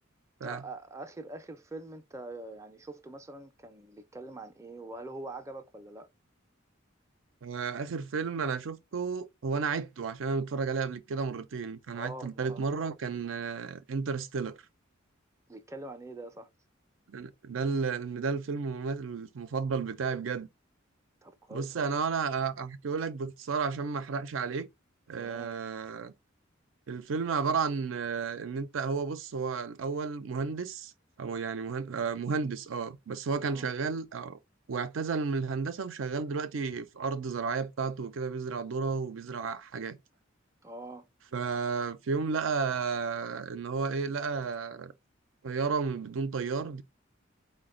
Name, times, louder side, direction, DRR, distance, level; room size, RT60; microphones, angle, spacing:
voice 1, 0.4-6.1 11.9-12.6 15.5-16.5 21.2-21.9 25.2-25.6 33.4-33.7 40.6-41.1, right 2 dB, 15° right, 0.4 m, -44 dB
voice 2, 7.4-14.6 17.1-20.5 21.5-24.7 25.1-26.1 26.9-30.9 31.2-34.4 34.7-40.0 41.3-44.9 45.4-46.8, right 5 dB, 75° right, 0.5 m, -32 dB
4.0 x 2.2 x 3.7 m
head